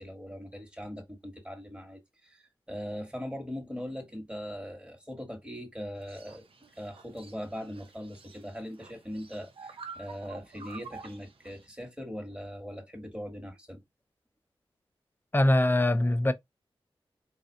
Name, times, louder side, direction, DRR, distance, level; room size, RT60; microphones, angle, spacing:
voice 1, 0.0-6.5 6.8-13.8, equal, 10° right, 1.4 m, -40 dB
sound 1, 6.0-11.7, right 5 dB, 65° right, 0.6 m, -49 dB
voice 2, 15.3-16.3, left 1 dB, 20° left, 0.5 m, -23 dB
4.0 x 2.4 x 2.7 m
cardioid pair, 50°, 10 cm